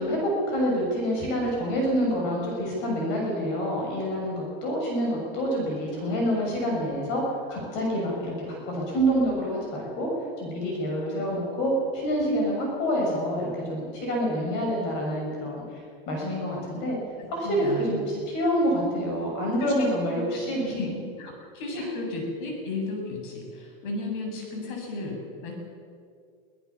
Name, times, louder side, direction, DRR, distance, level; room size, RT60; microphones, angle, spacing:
voice 1, 0.0-10.1 10.4-15.8 16.1-17.0 17.3-20.7 21.7-21.9, equal, 35° left, -1 dB, 6.8 m, -27 dB
voice 2, 17.1-18.0 19.6-20.4 20.7-20.9 21.2-25.5, left 2 dB, 55° left, 1 dB, 7.6 m, -34 dB
24.0 x 17.0 x 7.2 m, 2.2 s
supercardioid pair, 160°, 29 cm